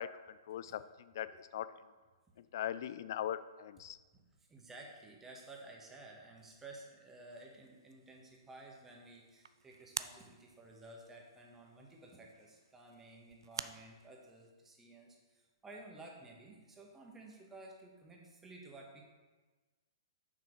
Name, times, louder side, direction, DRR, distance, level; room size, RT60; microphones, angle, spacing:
voice 1, 0.0-1.7 2.5-4.0, left 10 dB, 55° left, 14 dB, 0.3 m, -40 dB
voice 2, 4.5-19.0, right 2 dB, 15° right, -1 dB, 1.5 m, -54 dB
sound 1, 7.3-14.5, right 6 dB, 70° right, 0.3 m, -50 dB
6.8 x 6.0 x 4.7 m, 1.3 s
figure-of-eight pair, 115°, 2 cm